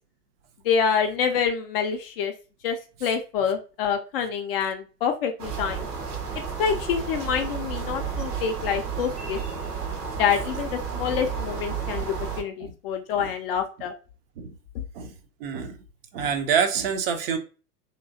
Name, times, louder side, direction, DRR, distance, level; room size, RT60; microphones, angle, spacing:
voice 1, 0.6-2.3 2.6-5.9 6.6-9.7 10.2-13.9 14.7-14.8, left 7 dB, 40° left, 0.5 m, -27 dB
sound 1, 5.4-12.4, right 6 dB, 75° right, 1.0 m, -32 dB
voice 2, 15.4-15.8 16.1-17.4, right 7 dB, 40° right, 0.5 m, -26 dB
3.0 x 2.9 x 2.5 m
figure-of-eight pair, 100°, 47 cm